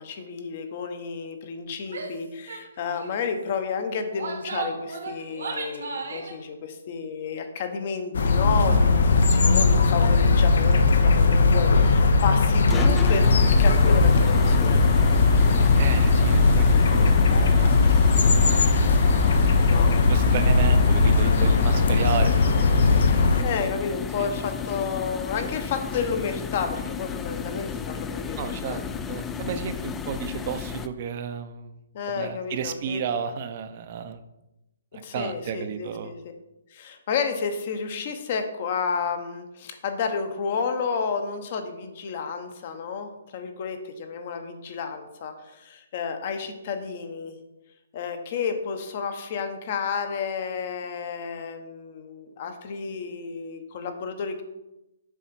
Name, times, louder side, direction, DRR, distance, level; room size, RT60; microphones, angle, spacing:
voice 1, 0.0-15.0 19.7-20.0 23.0-28.8 31.9-33.0 34.9-36.1 36.7-47.4 47.9-54.4, left 5 dB, 40° left, 7 dB, 1.0 m, -31 dB
Female speech woman speaking / Yell, 1.9-2.2 2.5-2.7 2.9-3.3 3.9-6.4, right 4 dB, 75° right, 1.3 m, -35 dB
sound 1, 8.1-23.4, left 3 dB, 70° left, 0.8 m, -19 dB
sound 2, 12.7-30.9, left 6 dB, 10° left, 0.3 m, -33 dB
voice 2, 15.7-17.9 20.1-22.3 24.2-24.3 28.4-31.8 32.1-34.2 34.9-36.1, right 7 dB, 40° right, 10 dB, 0.6 m, -32 dB
7.2 x 5.0 x 4.3 m, 0.95 s
hypercardioid pair, 155°, 0 cm